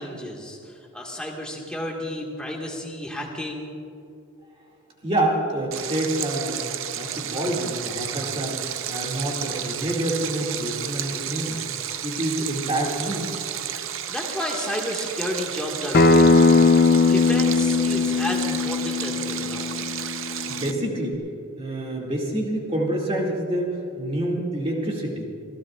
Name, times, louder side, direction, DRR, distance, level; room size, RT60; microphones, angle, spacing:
voice 1, 0.0-3.8 14.1-16.5 17.1-19.9, left 1 dB, 5° left, -2 dB, 1.8 m, -32 dB
voice 2, 5.0-6.6 7.0-8.6 8.9-11.6 12.0-13.4 20.5-21.2 21.6-25.3, right 1 dB, 25° right, -2 dB, 2.3 m, -27 dB
Stream, 5.7-20.7, right 10 dB, 60° right, 0.6 m, -32 dB
Acoustic guitar, 15.9-21.1, left 3 dB, 45° left, 0.6 m, -20 dB
27.5 x 16.0 x 2.5 m, 2.6 s
head